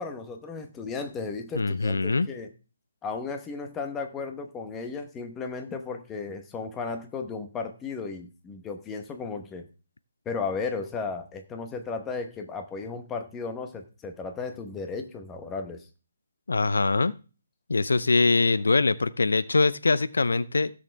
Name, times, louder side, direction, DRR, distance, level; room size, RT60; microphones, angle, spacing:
voice 1, 0.0-2.5 3.0-9.7 10.2-15.9, left 4 dB, 10° left, 6 dB, 1.0 m, -35 dB
voice 2, 1.5-2.3 16.5-17.1 17.7-20.7, left 3 dB, 90° left, 16 dB, 0.6 m, -23 dB
15.5 x 6.5 x 3.4 m, 0.35 s
hypercardioid pair, 165°, 0 cm